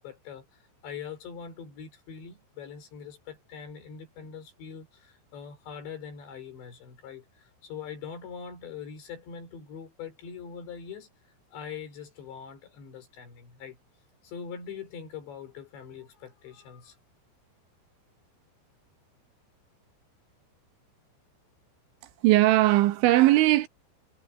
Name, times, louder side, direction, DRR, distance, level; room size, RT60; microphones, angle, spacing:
voice 1, 0.0-11.1 11.5-13.8 14.2-17.0, left 7 dB, 65° left, 6.8 m, -42 dB
voice 2, 22.2-23.7, right 17 dB, 80° right, 3.2 m, -19 dB
omnidirectional pair, 5.5 m